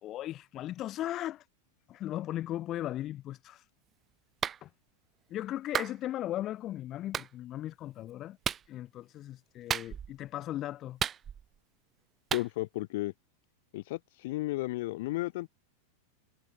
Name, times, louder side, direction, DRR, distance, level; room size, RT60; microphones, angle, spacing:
voice 1, 0.0-1.5 1.9-3.7 4.6-4.7 5.3-8.4 8.7-11.0, left 13 dB, 35° left, 4.9 m, -37 dB
Clapping, 4.4-4.6 5.7-6.0 7.1-7.3 8.4-8.7 9.7-10.2 11.0-11.6 12.3-12.5, right 8 dB, 25° right, 1.6 m, -33 dB
voice 2, 12.3-13.1 13.7-15.5, left 19 dB, 50° left, 1.1 m, -33 dB
figure-of-eight pair, 90°, 0 cm